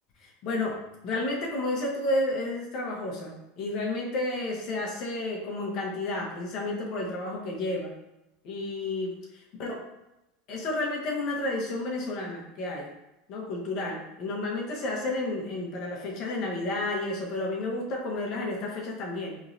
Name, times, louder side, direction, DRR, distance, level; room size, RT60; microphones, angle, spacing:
voice 1, 0.2-7.9 8.4-9.1 9.6-9.8 10.5-12.9 13.3-19.4, left 2 dB, 50° left, -1 dB, 0.9 m, -31 dB
4.4 x 3.1 x 2.6 m, 0.94 s
supercardioid pair, 125°, 0 cm